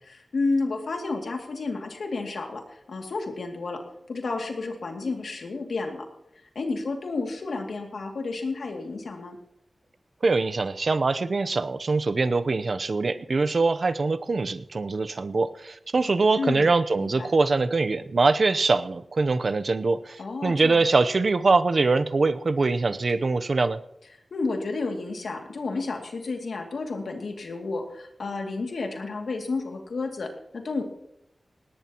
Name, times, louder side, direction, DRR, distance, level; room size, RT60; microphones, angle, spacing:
voice 1, 0.0-3.8 4.1-6.1 6.5-9.4 16.4-16.7 17.0-17.3 20.2-20.8 24.3-30.8, left 3 dB, 90° left, 3 dB, 2.4 m, -31 dB
voice 2, 10.2-23.8, right 3 dB, 55° right, 13 dB, 0.8 m, -23 dB
19.0 x 18.0 x 3.0 m, 0.79 s
wide cardioid pair, 95°, 0 cm